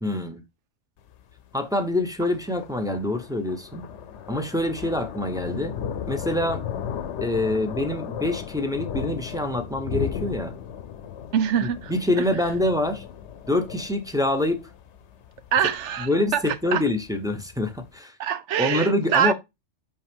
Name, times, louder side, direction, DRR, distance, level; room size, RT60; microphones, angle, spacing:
voice 1, 0.0-0.4 1.5-3.9 4.3-5.7 6.1-6.6 7.2-10.5 11.9-13.0 13.5-14.6 16.0-18.2 18.6-19.3, left 1 dB, 5° right, 0.6 m, -25 dB
Thunder, 1.0-17.9, left 8 dB, 75° left, 1.0 m, -36 dB
voice 2, 11.3-12.2 15.5-16.8 18.2-19.3, right 9 dB, 80° right, 1.0 m, -24 dB
5.5 x 5.1 x 3.5 m
omnidirectional pair, 1.2 m